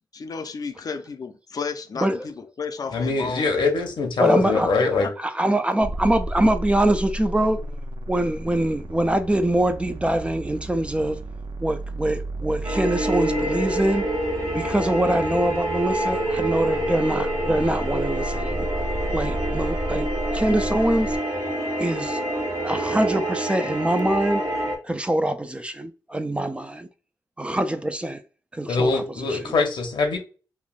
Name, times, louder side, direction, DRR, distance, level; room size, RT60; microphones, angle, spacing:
voice 1, 0.1-3.5 4.4-5.1, left 5 dB, 55° left, 0.5 m, -32 dB
voice 2, 2.9-5.1 28.7-30.2, left 4 dB, 85° left, 0.8 m, -22 dB
voice 3, 4.2-4.7 5.2-7.6 8.1-11.2 11.6-14.1 14.5-18.7 19.1-21.2 21.8-22.2 22.6-24.4 24.8-26.9 27.4-28.2 28.5-29.5, right 1 dB, 15° right, 0.3 m, -24 dB
sound 1, 5.8-21.2, right 1 dB, 85° right, 0.4 m, -33 dB
sound 2, 12.6-24.8, right 1 dB, 70° right, 0.9 m, -27 dB
3.2 x 2.2 x 2.4 m
cardioid pair, 80°, 8 cm